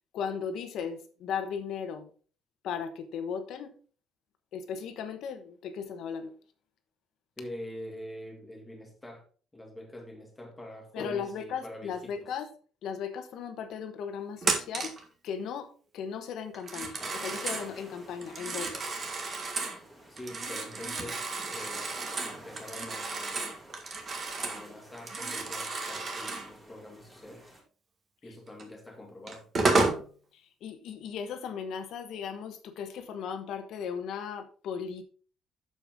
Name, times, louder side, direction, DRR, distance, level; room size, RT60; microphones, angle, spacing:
voice 1, 0.1-2.1 2.6-3.7 4.5-6.3 10.9-12.5 12.8-14.9 15.2-18.8 30.3-35.0, left 7 dB, 65° left, 1.2 m, -36 dB
voice 2, 7.4-9.2 9.5-12.3 20.1-21.9 22.2-23.6 24.4-27.5 28.2-29.5, left 1 dB, 10° left, 2.0 m, -45 dB
Telephone, 14.4-15.0 16.5-17.7 18.2-19.8 20.2-24.7 24.9-26.5 28.6-28.7 29.3-30.0, right 3 dB, 30° right, 1.7 m, -32 dB
sound 1, 17.0-27.6, right 1 dB, 5° right, 2.7 m, -50 dB
8.2 x 7.0 x 3.7 m
cardioid pair, 170°, 0 cm